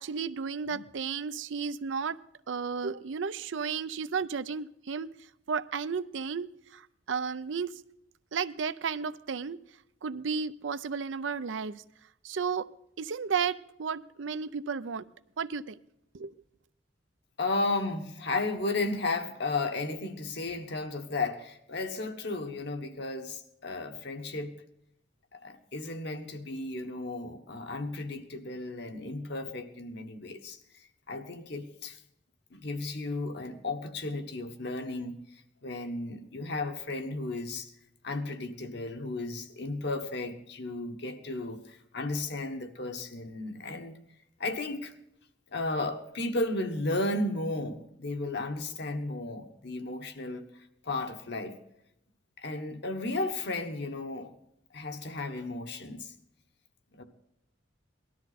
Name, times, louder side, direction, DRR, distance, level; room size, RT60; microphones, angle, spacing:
voice 1, 0.0-2.2 2.5-5.1 5.5-7.7 8.3-9.6 10.0-11.8 12.2-12.7 13.0-15.1 15.4-15.8 16.1-16.3, right 6 dB, 80° right, 0.5 m, -33 dB
voice 2, 17.4-24.6 25.3-30.6 31.1-32.0 32.5-37.7 38.0-44.0 44.4-44.9 45.5-50.5 50.8-51.6 52.4-54.3 54.7-56.1 56.9-57.0, left 2 dB, 65° left, 1.3 m, -34 dB
18.5 x 13.0 x 4.2 m
head